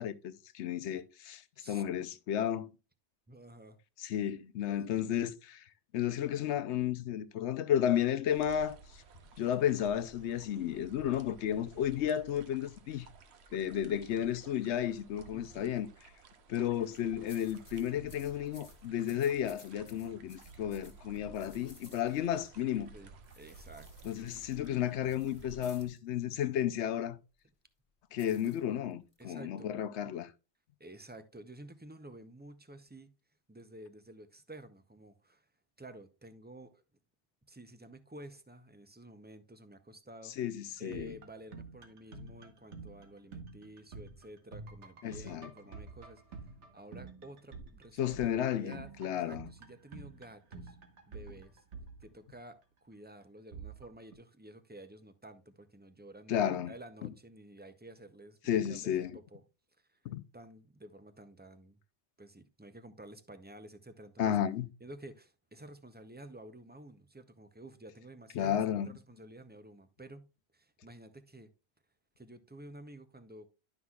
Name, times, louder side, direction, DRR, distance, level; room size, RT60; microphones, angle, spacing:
voice 1, 0.0-1.4 1.7-2.7 4.0-5.6 5.9-9.0 9.4-13.1 13.5-15.9 16.5-22.9 24.0-27.2 28.1-30.3 40.4-41.1 45.0-45.5 48.0-49.5 56.3-56.7 57.0-57.1 58.5-59.1 60.0-60.2 64.2-64.7 68.4-68.9, left 10 dB, 90° left, 0.9 m, -33 dB
voice 2, 3.3-3.8 4.7-5.2 15.3-15.7 22.9-24.1 29.2-29.8 30.8-33.1 33.5-35.5 35.8-36.8 37.5-40.4 40.8-46.5 46.7-50.8 51.1-51.6 52.0-59.4 59.8-60.0 60.3-61.8 62.2-64.4 64.8-71.5 72.2-73.5, right 1 dB, 15° right, 0.4 m, -52 dB
sound 1, 8.3-25.9, right 4 dB, 70° right, 1.1 m, -55 dB
sound 2, 16.8-17.0 17.3-22.5 23.2-26.0 28.2-29.2, left 2 dB, 30° left, 1.5 m, -59 dB
sound 3, 40.7-52.6 53.5-54.1, right 4 dB, 85° right, 1.5 m, -49 dB
11.0 x 5.9 x 2.3 m
omnidirectional pair, 1.1 m